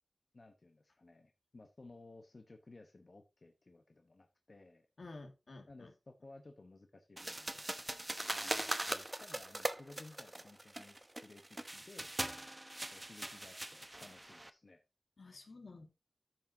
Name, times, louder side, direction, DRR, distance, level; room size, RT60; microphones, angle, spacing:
voice 1, 0.3-5.2 5.7-7.7 8.3-11.0 11.2-12.2 12.9-14.8, left 2 dB, 55° left, 1.0 m, -57 dB
voice 2, 5.0-5.9 15.2-15.9, left 3 dB, 80° left, 1.9 m, -51 dB
sound 1, 7.2-14.5, right 1 dB, 20° right, 0.9 m, -41 dB
13.5 x 6.1 x 2.7 m
wide cardioid pair, 75°, 0 cm